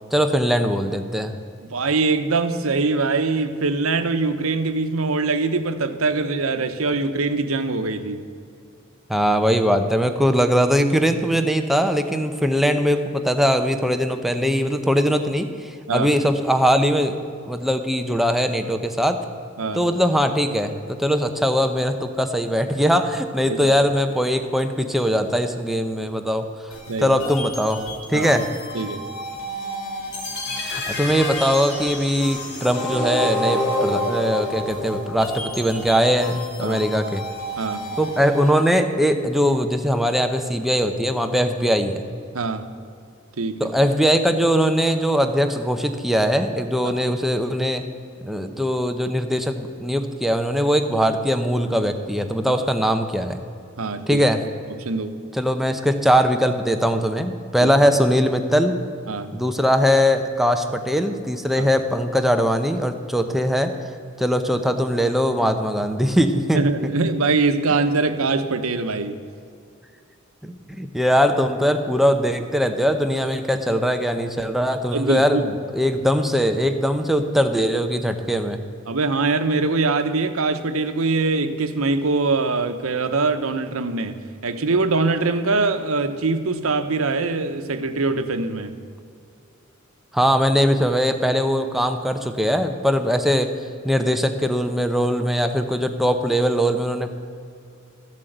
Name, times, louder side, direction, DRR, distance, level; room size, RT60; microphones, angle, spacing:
voice 1, 0.1-1.3 9.1-17.2 17.5-19.2 19.7-26.4 27.0-27.8 28.1-28.4 30.6-37.3 38.0-42.0 43.6-47.8 48.2-53.4 54.1-54.4 55.3-58.7 59.3-63.7 64.2-66.7 70.4-78.6 90.1-93.5 93.8-97.1, equal, ahead, 6 dB, 0.7 m, -21 dB
voice 2, 1.6-8.2 15.9-16.1 19.6-19.8 23.5-23.8 26.9-27.2 28.1-28.3 28.7-29.0 36.6-36.8 37.6-37.8 42.3-42.6 43.4-43.7 46.8-46.9 52.5-52.6 53.8-54.2 54.8-55.1 57.6-57.7 59.1-59.3 61.6-61.7 66.5-69.2 74.9-75.4 78.9-84.2 84.4-88.7, right 3 dB, 85° right, 9 dB, 0.9 m, -23 dB
sound 1, 26.7-38.7, equal, 90° left, 1.8 m, -35 dB
sound 2, 30.1-36.1, left 2 dB, 55° left, 2.7 m, -28 dB
13.5 x 7.5 x 7.9 m, 2.4 s
head